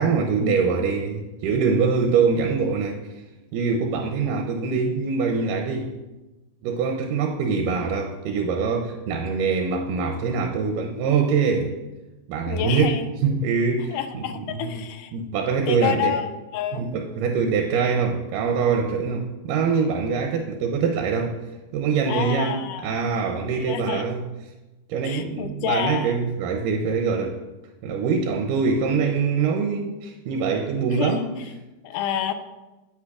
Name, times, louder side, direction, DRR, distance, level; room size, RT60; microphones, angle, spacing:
voice 1, 0.0-3.0 3.5-5.9 6.6-11.8 12.3-12.9 13.2-14.2 14.5-14.8 15.1-16.1 16.7-21.4 21.7-24.2 24.9-27.4 27.8-31.2, right 5 dB, 80° right, 4 dB, 2.2 m, -24 dB
voice 2, 12.5-13.1 13.9-15.1 15.7-16.9 22.1-23.0 23.6-24.1 25.0-26.2 30.9-31.2 31.8-32.3, left 9 dB, 80° left, 10 dB, 2.0 m, -29 dB
9.7 x 8.5 x 2.4 m, 1.1 s
omnidirectional pair, 3.9 m